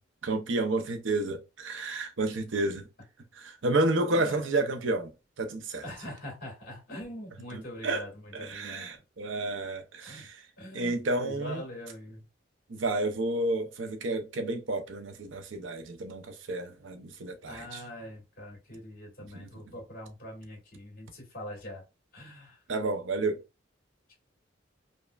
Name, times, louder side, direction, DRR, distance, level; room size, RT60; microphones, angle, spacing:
voice 1, 0.2-2.9 3.4-5.1 5.4-5.8 7.5-8.0 8.3-10.4 10.7-11.6 12.7-17.8 19.3-19.5 22.7-23.4, right 2 dB, 80° right, 0.6 m, -30 dB
voice 2, 5.8-8.9 10.1-10.3 10.6-12.2 17.5-21.8 22.1-22.6, left 1 dB, 50° left, 1.7 m, -43 dB
5.2 x 2.2 x 2.3 m
head